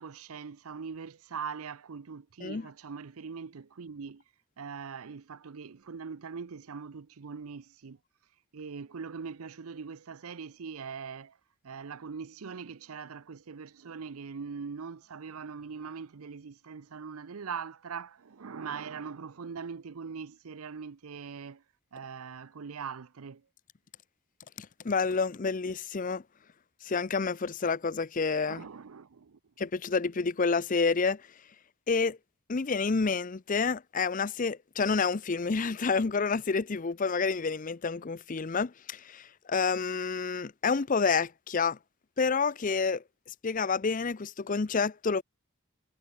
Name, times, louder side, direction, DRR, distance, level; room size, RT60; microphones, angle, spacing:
voice 1, 0.0-4.2 4.6-8.0 8.5-11.4 11.6-21.6 21.9-23.4 28.5-29.4, right 6 dB, 80° right, 0.6 m, -41 dB
voice 2, 24.6-26.2 26.8-28.6 29.6-31.2 31.9-32.2 32.5-41.8 42.2-45.2, left 4 dB, 35° left, 0.5 m, -29 dB
head